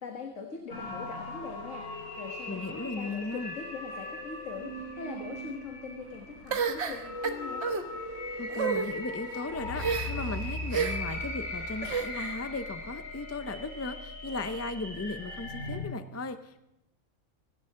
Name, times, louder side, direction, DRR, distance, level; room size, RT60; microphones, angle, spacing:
voice 1, 0.0-7.6, left 5 dB, 70° left, 2 dB, 1.8 m, -42 dB
sound 1, 0.7-15.8, left 1 dB, 90° left, 4.4 m, -39 dB
voice 2, 2.5-3.6 8.4-16.6, left 3 dB, 25° left, 10 dB, 0.3 m, -36 dB
sound 2, 6.5-7.8 8.5-8.9 9.8-10.3 10.7-11.2 11.8-12.4, right 6 dB, 60° right, 1.4 m, -30 dB
Wind instrument woodwind instrument, 10.7-14.6, right 1 dB, 40° right, 6.3 m, -50 dB
26.0 x 12.0 x 3.7 m, 0.88 s
omnidirectional pair, 1.3 m